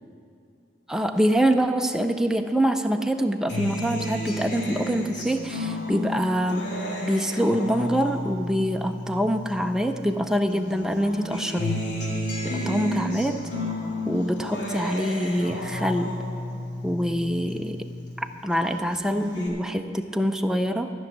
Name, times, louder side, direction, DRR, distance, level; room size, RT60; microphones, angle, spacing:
voice 1, 0.9-6.7 7.0-11.8 12.4-13.4 14.1-16.2 16.8-17.9 18.2-20.9, equal, 5° right, 5 dB, 0.4 m, -25 dB
Acoustic guitar, 3.5-10.1 10.5-18.1 18.5-19.5, left 1 dB, 75° left, 2.5 m, -32 dB
13.5 x 6.2 x 9.1 m, 2.7 s
head